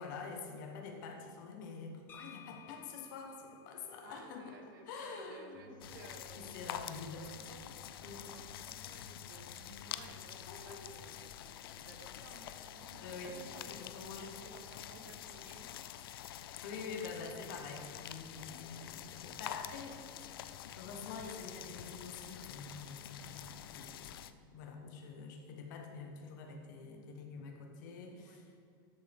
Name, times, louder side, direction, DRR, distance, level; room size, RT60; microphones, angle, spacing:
voice 1, 0.0-4.6 4.9-5.8 6.3-7.3 8.0-8.2 10.5-10.9 13.0-13.3 13.7-14.3 16.6-24.2 24.5-28.5, left 4 dB, 60° left, 3 dB, 1.3 m, -47 dB
sound 1, 2.1-5.9, left 8 dB, 15° left, 0.6 m, -58 dB
voice 2, 4.0-7.7 8.2-11.3 11.7-15.7 26.8-27.1 27.8-28.5, right 3 dB, 65° right, 4 dB, 1.2 m, -57 dB
sound 2, 5.5-10.9, right 1 dB, 5° right, 2.4 m, -60 dB
sound 3, 5.8-24.3, left 11 dB, 90° left, 0.5 m, -47 dB
13.0 x 6.9 x 3.6 m, 2.3 s
supercardioid pair, 160°, 12 cm